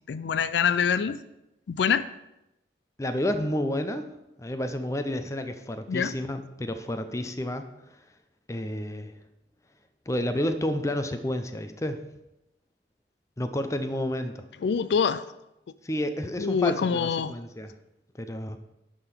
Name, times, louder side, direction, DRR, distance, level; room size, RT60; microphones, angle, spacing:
voice 1, 0.1-1.2 1.7-2.1 5.9-6.1 14.6-15.3 16.4-17.3, left 6 dB, 75° left, 14 dB, 0.4 m, -25 dB
voice 2, 3.0-4.1 4.4-7.6 8.5-9.1 10.1-12.0 13.4-14.4 15.8-17.7 18.2-18.6, left 1 dB, 15° left, 8 dB, 0.6 m, -30 dB
10.5 x 3.8 x 6.8 m, 0.90 s
head